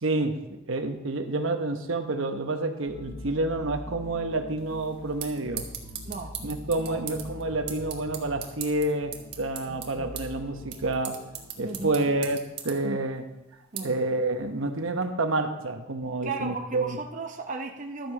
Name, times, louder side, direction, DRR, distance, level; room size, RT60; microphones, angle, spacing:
voice 1, 0.0-5.7 6.4-11.1 11.6-12.4 12.6-13.2 13.8-17.0, right 2 dB, 75° right, 6 dB, 1.0 m, -28 dB
sound 1, 2.9-12.4, left 1 dB, 35° left, 1.0 m, -44 dB
sound 2, 4.6-15.0, right 9 dB, 55° right, 1.5 m, -42 dB
voice 2, 6.1-6.4 6.8-7.0 11.6-12.0 12.8-13.0 13.7-14.0 16.2-18.1, right 3 dB, 40° right, 3 dB, 0.7 m, -35 dB
12.0 x 7.9 x 4.8 m, 0.96 s
head